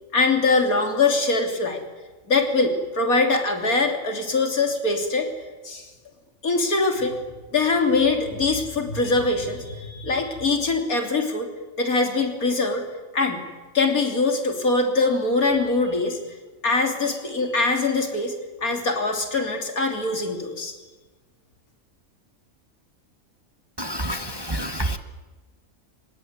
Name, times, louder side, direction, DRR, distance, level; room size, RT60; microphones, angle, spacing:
voice 1, 0.1-1.8 2.3-5.3 5.6-5.9 6.4-7.2 7.5-11.5 11.8-12.8 13.1-13.4 13.7-16.2 16.6-18.4 18.6-20.7, left 3 dB, 85° left, 3 dB, 3.5 m, -22 dB
voice 2, 23.8-25.0, right 1 dB, 20° right, 8 dB, 1.0 m, -28 dB
25.0 x 19.5 x 9.6 m, 1.3 s
omnidirectional pair, 1.5 m